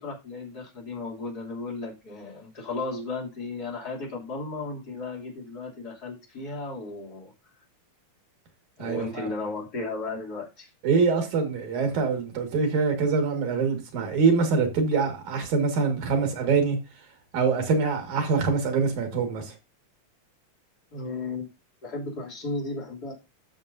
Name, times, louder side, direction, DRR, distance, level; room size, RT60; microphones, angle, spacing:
voice 1, 0.0-7.3 8.8-10.7 20.9-21.5 21.8-23.1, left 3 dB, 30° left, 3.3 m, -35 dB
voice 2, 8.8-9.3 10.8-16.8 17.3-19.5, right 5 dB, 75° right, 3.3 m, -24 dB
14.0 x 6.2 x 2.7 m
omnidirectional pair, 3.4 m